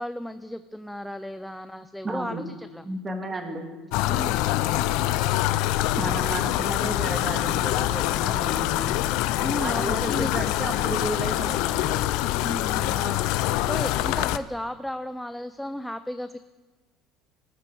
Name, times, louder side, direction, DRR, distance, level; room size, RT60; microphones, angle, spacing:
voice 1, 0.0-2.8 4.0-4.5 9.4-10.5 12.4-16.4, left 1 dB, 5° left, 10 dB, 0.5 m, -34 dB
voice 2, 2.0-2.4 2.8-3.7 6.0-9.0 9.6-12.1, right 2 dB, 20° right, 4 dB, 2.0 m, -33 dB
sound 1, 3.9-14.4, left 15 dB, 75° left, 0.4 m, -25 dB
19.5 x 6.7 x 4.6 m, 1.2 s
supercardioid pair, 110°, 0 cm